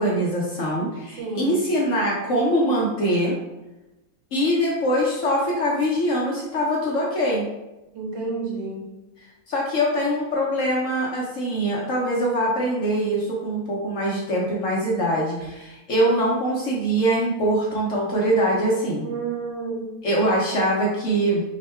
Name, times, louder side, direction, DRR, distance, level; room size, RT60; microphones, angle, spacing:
voice 1, 0.0-3.4 4.3-7.5 9.5-19.1 20.0-21.4, right 1 dB, 65° left, -4 dB, 0.8 m, -23 dB
voice 2, 1.2-1.6 7.9-8.8 19.0-19.9, right 4 dB, 75° right, -3 dB, 1.8 m, -30 dB
3.6 x 2.1 x 4.3 m, 1.0 s
omnidirectional pair, 2.1 m